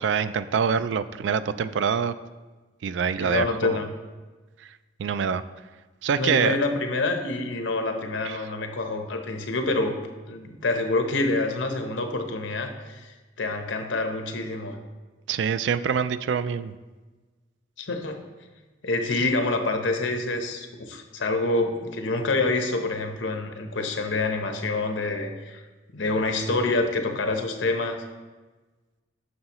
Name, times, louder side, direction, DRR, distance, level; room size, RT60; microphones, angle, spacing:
voice 1, 0.0-2.1 2.8-3.8 4.6-4.7 5.0-5.4 6.0-6.6 8.2-8.4 15.3-16.7, right 6 dB, 70° right, 14 dB, 0.3 m, -25 dB
voice 2, 3.2-3.9 6.1-10.0 10.3-14.8 17.8-18.2 18.8-25.6 25.9-28.0, left 2 dB, 85° left, 5 dB, 0.9 m, -27 dB
9.4 x 6.4 x 3.0 m, 1.3 s
head